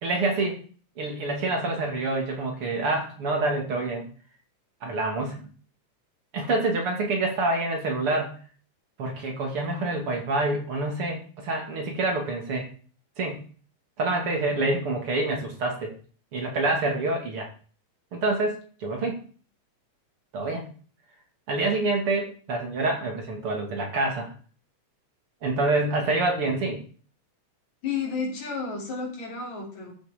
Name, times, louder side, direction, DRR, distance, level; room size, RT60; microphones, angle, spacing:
voice 1, 0.0-0.6 1.0-4.1 4.8-5.5 6.3-8.4 9.0-12.7 13.2-13.4 14.0-15.9 16.3-17.5 18.1-19.2 20.3-20.7 21.5-24.3 25.4-26.8, right 2 dB, 50° right, 2 dB, 3.2 m, -27 dB
voice 2, 27.8-29.9, left 5 dB, 70° left, -1 dB, 5.0 m, -31 dB
13.5 x 7.4 x 5.2 m, 0.42 s
omnidirectional pair, 3.3 m